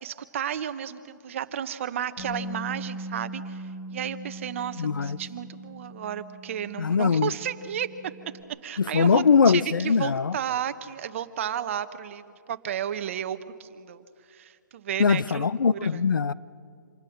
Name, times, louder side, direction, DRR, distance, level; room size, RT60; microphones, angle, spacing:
voice 1, 0.0-8.1 8.6-16.1, right 9 dB, 40° right, 1.0 m, -33 dB
Bass guitar, 2.2-8.4, right 1 dB, 40° left, 7.1 m, -40 dB
voice 2, 4.8-5.2 6.8-7.3 8.9-10.3 15.0-16.3, left 5 dB, 85° left, 0.7 m, -21 dB
26.5 x 20.5 x 6.6 m
hypercardioid pair, 155°, 11 cm